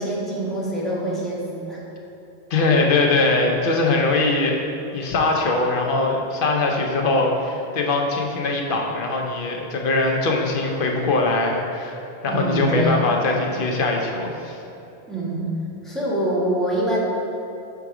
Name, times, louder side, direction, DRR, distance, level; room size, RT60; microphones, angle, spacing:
voice 1, 0.0-1.8 12.3-13.0 15.1-15.6 15.8-17.0, right 1 dB, ahead, -7 dB, 1.2 m, -25 dB
voice 2, 2.5-4.6 4.9-12.0 12.2-14.6, left 3 dB, 55° left, 1 dB, 0.8 m, -21 dB
6.0 x 3.9 x 4.8 m, 2.9 s
omnidirectional pair, 1.1 m